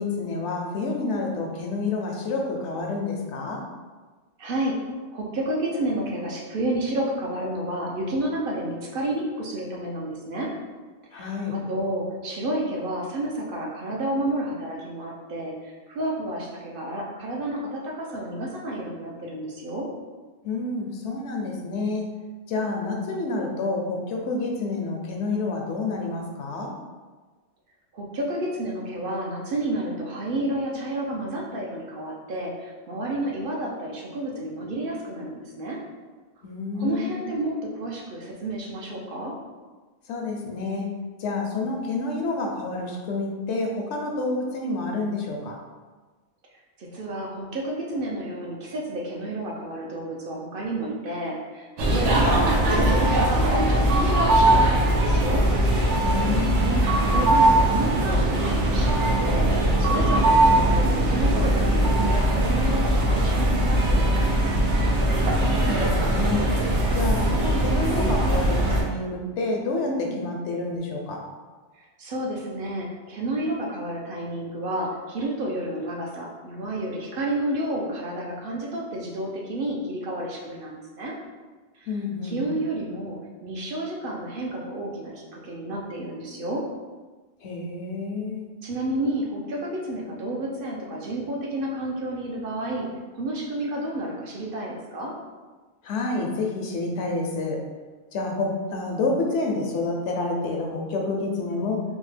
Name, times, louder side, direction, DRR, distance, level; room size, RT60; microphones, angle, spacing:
voice 1, 0.0-3.6 11.1-11.5 20.4-22.1 22.5-26.7 36.4-37.2 40.1-40.9 41.2-45.6 56.0-56.9 65.2-66.5 66.9-71.2 81.9-82.4 87.4-88.5 95.8-97.6 98.1-101.8, left 3 dB, 80° left, 0 dB, 0.9 m, -28 dB
voice 2, 4.4-4.8 5.1-10.5 11.1-19.9 27.9-35.8 36.7-39.3 46.8-55.4 57.0-59.5 59.8-64.4 69.9-70.3 71.8-81.1 81.7-81.9 82.2-86.6 88.6-92.9 93.1-95.1, right 1 dB, 60° right, -2 dB, 0.7 m, -30 dB
sound 1, 51.8-68.8, right 1 dB, 85° right, 1.0 m, -21 dB
3.5 x 2.1 x 3.3 m, 1.3 s
omnidirectional pair, 1.2 m